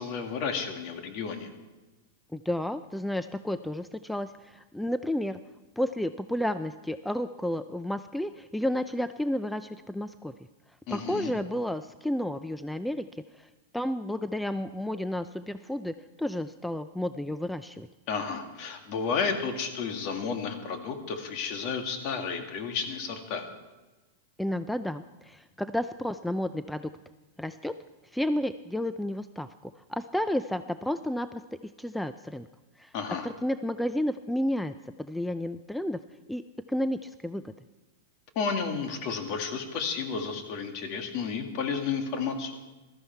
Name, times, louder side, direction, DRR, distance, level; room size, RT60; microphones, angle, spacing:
voice 1, 0.0-1.5 10.9-11.3 18.1-23.5 32.9-33.3 38.4-42.5, left 5 dB, 50° left, 5 dB, 2.0 m, -32 dB
voice 2, 2.3-5.4 5.8-10.3 10.9-13.1 13.3-13.5 13.7-17.9 24.4-26.9 27.4-27.7 28.1-31.4 31.8-32.5 32.8-32.9 33.2-36.0 36.3-36.4 36.7-37.5, left 1 dB, 5° left, 11 dB, 0.3 m, -31 dB
15.0 x 13.0 x 4.5 m, 1.2 s
hypercardioid pair, 130°, 0 cm